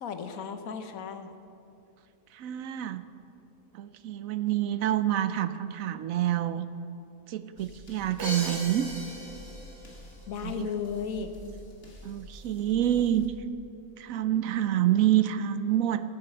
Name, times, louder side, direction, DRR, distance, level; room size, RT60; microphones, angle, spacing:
voice 1, 0.0-1.3 10.3-11.3, left 6 dB, 70° left, 8 dB, 1.3 m, -34 dB
voice 2, 2.3-3.0 3.7-6.7 7.3-8.9 10.4-10.7 12.0-13.3 14.0-16.0, right 12 dB, 75° right, 12 dB, 0.9 m, -27 dB
sound 1, 7.6-13.3, equal, 40° left, 1.9 m, -49 dB
Crash cymbal, 8.2-10.0, right 1 dB, 50° right, 2.5 m, -37 dB
14.0 x 8.7 x 6.8 m, 2.6 s
omnidirectional pair, 1.5 m